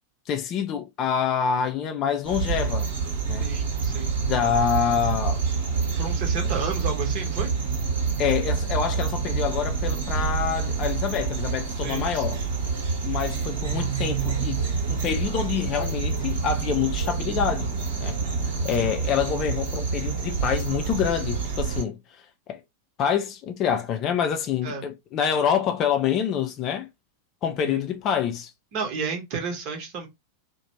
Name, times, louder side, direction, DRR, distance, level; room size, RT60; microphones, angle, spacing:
voice 1, 0.3-2.9 3.3-3.5 4.2-5.4 8.2-12.4 13.0-14.6 14.9-17.7 18.0-18.2 18.5-22.0 22.5-22.6 23.0-26.9 27.4-28.5, left 8 dB, 35° left, 0.4 m, -26 dB
sound 1, 2.2-21.8, right 5 dB, 65° right, 1.1 m, -27 dB
voice 2, 3.4-4.1 5.9-7.5 11.8-12.4 24.6-24.8 27.6-27.8 28.7-30.1, right 5 dB, 40° right, 1.0 m, -32 dB
2.5 x 2.1 x 2.9 m
figure-of-eight pair, 90°, 0 cm